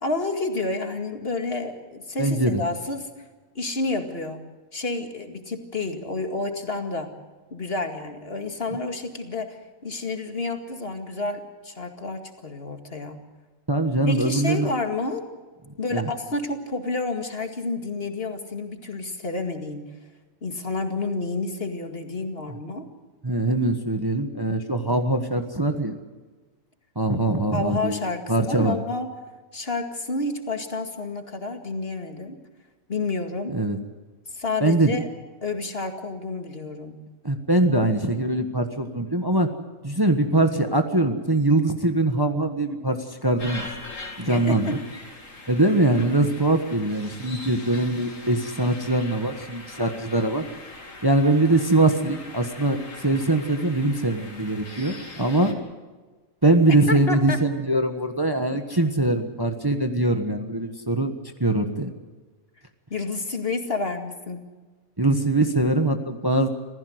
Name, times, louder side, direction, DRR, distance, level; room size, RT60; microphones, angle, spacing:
voice 1, 0.0-3.3 3.6-4.4 4.7-7.1 7.5-13.2 14.1-15.2 15.8-19.9 20.4-22.9 27.5-29.1 29.5-32.4 32.9-33.6 34.3-35.1 35.4-37.0 44.2-44.8 56.9-57.4 62.9-64.4, left 3 dB, 45° left, 5 dB, 2.3 m, -30 dB
voice 2, 2.2-2.6 13.7-14.7 15.9-16.1 23.2-25.9 26.9-28.0 28.3-28.8 33.5-33.8 34.6-34.9 37.2-39.5 39.8-43.8 44.2-44.8 45.5-50.4 51.0-55.6 56.4-61.1 61.4-61.9 65.0-66.5, right 2 dB, 20° right, 6 dB, 1.3 m, -22 dB
sound 1, 43.4-55.5, left 2 dB, 70° left, 3.1 m, -41 dB
26.5 x 16.0 x 7.9 m, 1.3 s
omnidirectional pair, 1.4 m